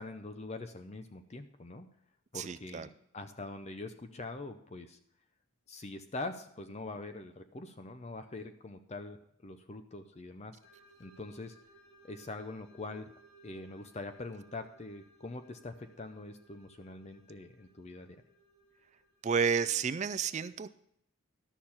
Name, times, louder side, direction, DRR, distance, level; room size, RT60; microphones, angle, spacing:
voice 1, 0.0-1.9 2.3-5.0 5.7-10.6 11.0-11.5 12.0-13.1 13.4-18.2, left 2 dB, 30° left, 8 dB, 0.5 m, -44 dB
voice 2, 2.3-2.9 19.2-20.7, right 6 dB, 30° right, 14 dB, 0.3 m, -31 dB
sound 1, 10.6-19.6, right 2 dB, 55° left, 2.4 m, -62 dB
12.0 x 6.6 x 5.6 m, 0.74 s
head